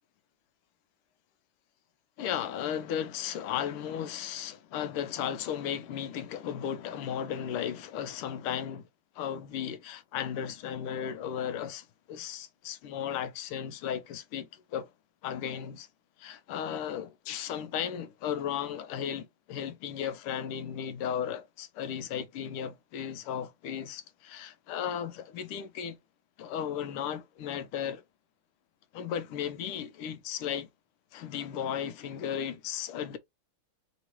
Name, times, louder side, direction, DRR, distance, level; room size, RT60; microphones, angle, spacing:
voice 1, 2.2-8.9 9.1-14.9 15.2-15.9 16.2-26.0 26.4-28.0 28.9-30.7 31.1-33.2, left 9 dB, 85° left, 1.6 m, -35 dB
4.8 x 3.0 x 3.0 m
omnidirectional pair, 2.4 m